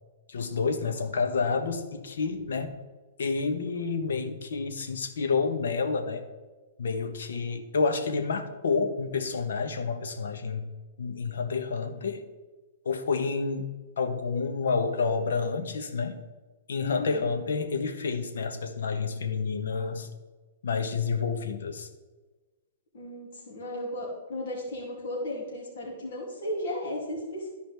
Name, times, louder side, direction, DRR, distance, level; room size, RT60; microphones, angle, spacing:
voice 1, 0.3-2.8 3.2-6.2 6.8-10.7 11.0-12.2 12.8-13.7 14.0-16.2 16.7-20.1 20.6-21.9, left 4 dB, 85° left, 6 dB, 1.1 m, -29 dB
voice 2, 16.8-17.3 22.9-27.5, left 1 dB, 65° left, -4 dB, 2.8 m, -35 dB
13.5 x 4.9 x 3.5 m, 1.3 s
hypercardioid pair, 155°, 0 cm